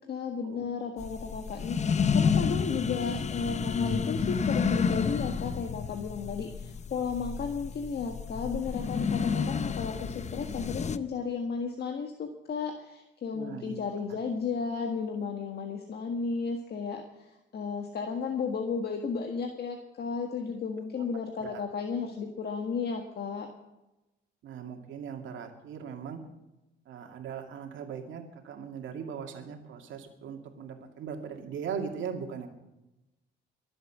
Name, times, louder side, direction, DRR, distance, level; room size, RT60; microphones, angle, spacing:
voice 1, 0.1-17.0 17.5-23.5, left 5 dB, 55° left, 3 dB, 1.7 m, -34 dB
sound 1, 1.0-11.0, left 6 dB, 35° left, 0.7 m, -30 dB
voice 2, 13.3-13.8 14.1-14.2 21.4-21.6 24.4-26.2 26.9-32.5, right 7 dB, 75° right, 3 dB, 2.4 m, -39 dB
22.5 x 8.0 x 6.1 m, 0.98 s
cardioid pair, 90°, 20 cm